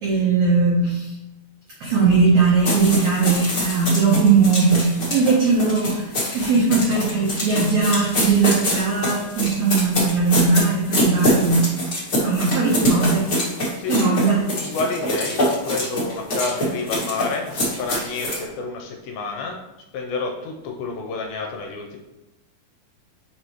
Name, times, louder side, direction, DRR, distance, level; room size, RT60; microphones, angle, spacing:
voice 1, 0.0-1.1 1.8-11.7 12.2-13.3 13.9-14.4, right 4 dB, 85° right, -4 dB, 1.6 m, -19 dB
sound 1, 2.6-18.4, left 1 dB, 45° left, 1.2 m, -24 dB
voice 2, 13.8-19.6 19.9-22.0, left 4 dB, 80° left, 2 dB, 2.3 m, -29 dB
6.2 x 5.2 x 3.0 m, 1.0 s
omnidirectional pair, 4.6 m